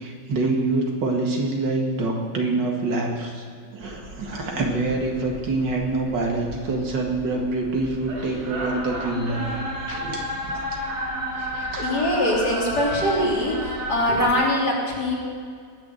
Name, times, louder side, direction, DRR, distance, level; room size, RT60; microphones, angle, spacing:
voice 1, 0.0-3.4 3.7-9.5 9.9-10.8 11.4-11.9, right 2 dB, 80° right, 1 dB, 2.7 m, -26 dB
sound 1, 3.8-14.3, equal, 60° right, 4.7 m, -33 dB
voice 2, 11.8-15.2, left 1 dB, 60° left, -4 dB, 3.8 m, -23 dB
19.5 x 7.0 x 8.0 m, 2.2 s
omnidirectional pair, 1.9 m